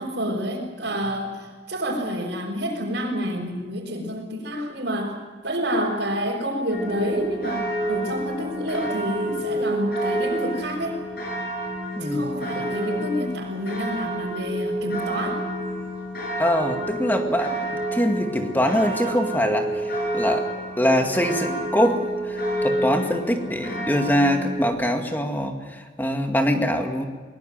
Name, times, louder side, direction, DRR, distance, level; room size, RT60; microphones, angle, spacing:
voice 1, 0.0-5.2 5.4-11.0 12.0-15.4, equal, 70° right, -4 dB, 4.9 m, -28 dB
sound 1, 6.7-24.7, right 1 dB, 55° left, 7.7 m, -29 dB
voice 2, 16.4-17.6 17.9-20.5 20.8-27.0, equal, 10° left, 4 dB, 2.1 m, -23 dB
23.5 x 21.0 x 7.7 m, 1.4 s
head